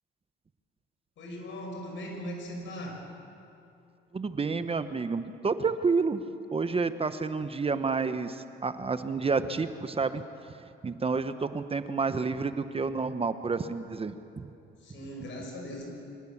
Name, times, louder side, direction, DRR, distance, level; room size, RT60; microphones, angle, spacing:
voice 1, 1.2-3.0 14.8-15.9, equal, 75° left, 1 dB, 6.1 m, -39 dB
voice 2, 4.1-6.2 6.5-10.5 10.8-14.5, right 4 dB, 30° right, 11 dB, 0.9 m, -30 dB
24.0 x 19.5 x 7.3 m, 2.7 s
cardioid pair, 90°, 20 cm